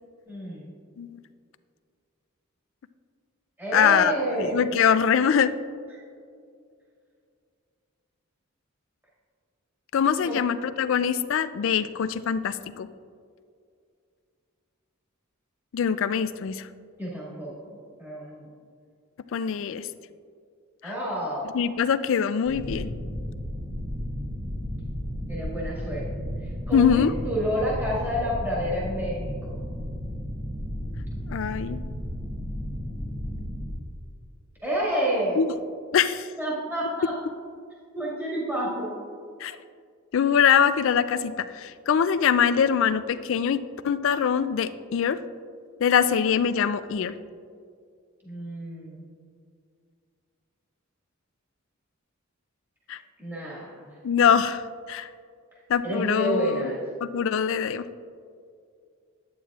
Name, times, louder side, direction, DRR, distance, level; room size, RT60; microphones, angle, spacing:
voice 1, 0.3-0.7 3.6-4.6 10.2-10.4 17.0-17.7 18.0-18.5 20.8-21.5 25.3-26.2 26.7-29.2 29.5-29.6 34.6-35.4 36.4-37.1 37.9-38.9 48.2-49.0 53.2-53.8 55.8-56.8, right 1 dB, 10° right, -7 dB, 1.8 m, -29 dB
voice 2, 3.7-4.1 4.4-5.5 9.9-12.9 15.7-16.6 19.3-19.9 20.8-20.9 21.5-22.9 26.7-27.1 31.3-31.8 35.4-35.5 35.9-36.3 39.4-39.6 40.1-43.6 43.8-45.2 45.8-47.1 52.9-53.0 54.0-54.6 54.9-55.1 55.7-56.7 57.0-57.8, left 7 dB, 65° left, 13 dB, 0.3 m, -23 dB
sound 1, 22.4-33.7, equal, 45° right, 1.1 m, -33 dB
11.0 x 8.7 x 2.4 m, 2.3 s
head